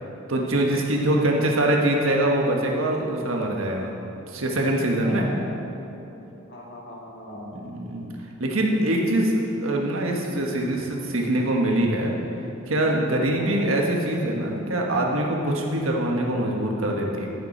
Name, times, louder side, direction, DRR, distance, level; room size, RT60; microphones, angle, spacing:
voice 1, 0.3-3.9 4.3-5.3 7.5-8.1 8.4-9.3 9.6-12.2 12.7-17.3, right 1 dB, 90° right, 0 dB, 1.4 m, -23 dB
voice 2, 5.0-5.7 6.5-7.6 13.3-13.7, left 1 dB, 60° left, -4 dB, 2.1 m, -39 dB
14.0 x 7.0 x 4.5 m, 3.0 s
head